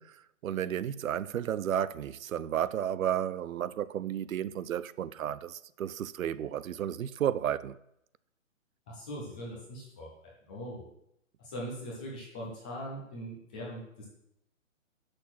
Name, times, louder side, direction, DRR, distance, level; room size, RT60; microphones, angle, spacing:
voice 1, 0.0-7.8, right 10 dB, 85° right, 0.6 m, -33 dB
voice 2, 8.9-10.1 10.4-10.8 11.4-14.1, equal, 5° left, 0.5 m, -41 dB
6.3 x 6.0 x 6.0 m
hypercardioid pair, 150°, 40 cm